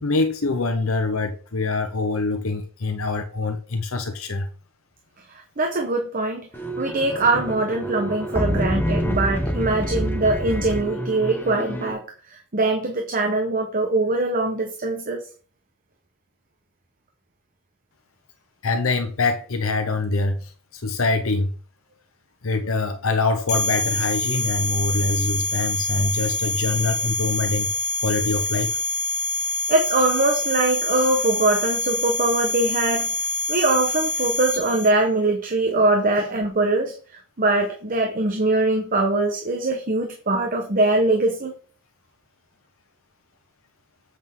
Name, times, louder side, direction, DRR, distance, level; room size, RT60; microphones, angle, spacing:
voice 1, 0.0-4.5 18.6-21.5 22.4-27.7 28.0-28.8, left 3 dB, 70° left, 0.8 m, -24 dB
voice 2, 5.6-6.5 6.8-12.0 12.5-15.2 29.7-33.1 33.5-36.9 37.4-41.5, right 2 dB, 40° right, 1.1 m, -22 dB
sound 1, 6.5-11.9, equal, 10° left, 1.1 m, -27 dB
sound 2, 23.5-34.9, left 2 dB, 35° left, 2.1 m, -26 dB
8.0 x 6.2 x 3.6 m
head